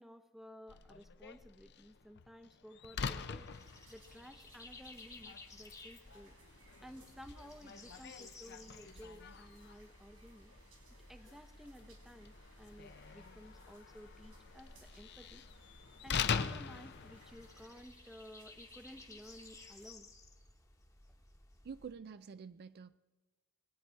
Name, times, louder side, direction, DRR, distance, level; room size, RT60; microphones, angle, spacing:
voice 1, 0.0-6.4 6.8-10.5 11.1-15.4 16.0-20.1, equal, ahead, 10 dB, 0.8 m, -55 dB
Slam, 0.7-17.8, left 6 dB, 50° left, 0.6 m, -44 dB
sound 1, 3.1-21.9, left 2 dB, 15° left, 1.2 m, -58 dB
sound 2, 3.5-19.9, right 2 dB, 75° right, 4.2 m, -64 dB
voice 2, 21.6-23.0, right 6 dB, 50° right, 13 dB, 0.4 m, -48 dB
22.0 x 9.3 x 4.5 m, 1.3 s
head